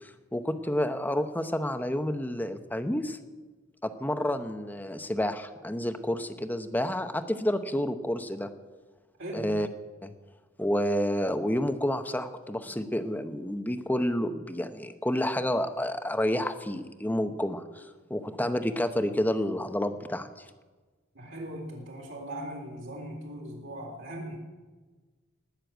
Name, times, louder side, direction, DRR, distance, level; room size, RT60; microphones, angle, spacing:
voice 1, 0.0-3.2 3.8-8.5 9.3-9.7 10.0-10.1 10.6-20.4, left 1 dB, 10° left, 9 dB, 0.8 m, -29 dB
voice 2, 9.2-9.5 21.1-24.4, right 1 dB, 65° right, -2 dB, 3.8 m, -39 dB
19.0 x 6.6 x 9.1 m, 1.3 s
head